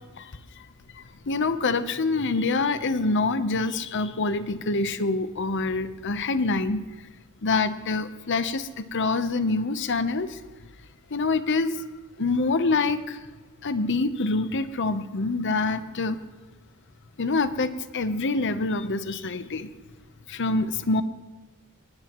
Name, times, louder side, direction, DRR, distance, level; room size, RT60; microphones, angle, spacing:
voice 1, 1.3-6.8 7.4-10.4 11.1-11.8 12.2-13.2 13.6-16.2 17.2-19.7 20.3-21.0, left 3 dB, 55° left, 11 dB, 0.8 m, -26 dB
22.5 x 19.5 x 3.0 m, 1.3 s
head